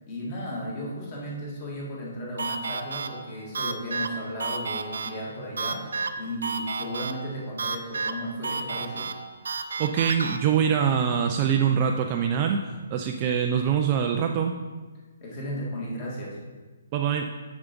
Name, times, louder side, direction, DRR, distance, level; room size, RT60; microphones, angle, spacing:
voice 1, 0.1-9.1 15.2-16.4, equal, 20° left, -3 dB, 1.8 m, -35 dB
sound 1, 2.4-10.4, right 4 dB, 80° right, 0.7 m, -32 dB
voice 2, 9.8-14.5 16.9-17.4, right 7 dB, 20° right, 3 dB, 0.3 m, -24 dB
7.1 x 6.9 x 5.2 m, 1.3 s
hypercardioid pair, 180°, 0 cm